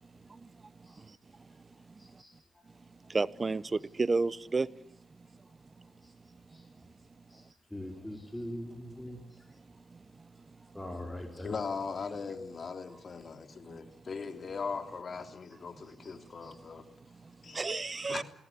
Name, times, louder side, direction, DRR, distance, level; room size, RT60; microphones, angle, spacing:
voice 1, 2.0-2.3 6.5-6.6 7.3-7.4 7.7-9.2 10.7-11.5 16.4-16.5, left 1 dB, 5° left, 2 dB, 4.7 m, -41 dB
voice 2, 3.1-4.7 17.5-18.2, right 3 dB, 35° right, 20 dB, 0.8 m, -30 dB
voice 3, 11.4-16.9 17.4-18.2, left 5 dB, 50° left, 7 dB, 3.3 m, -39 dB
22.0 x 17.5 x 9.9 m, 0.72 s
supercardioid pair, 55°, 0 cm